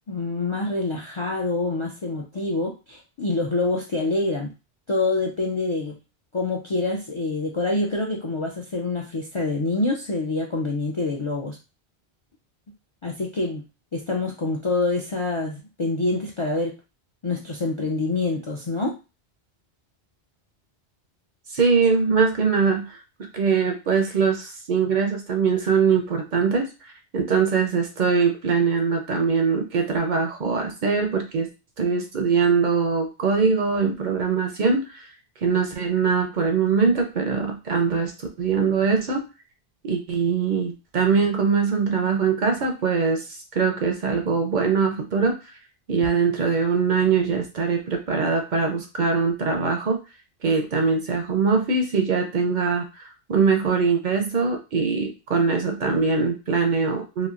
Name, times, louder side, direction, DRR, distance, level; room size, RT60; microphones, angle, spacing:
voice 1, 0.1-4.5 4.9-5.9 6.3-11.6 13.0-13.6 13.9-16.7 17.2-18.9, left 2 dB, 50° left, 0 dB, 0.3 m, -26 dB
voice 2, 21.5-23.0 23.3-31.5 31.8-35.1 35.4-39.3 39.8-45.4 45.9-50.0 50.4-57.3, right 5 dB, 60° right, 4 dB, 0.6 m, -22 dB
3.0 x 2.5 x 2.4 m, 0.29 s
omnidirectional pair, 1.1 m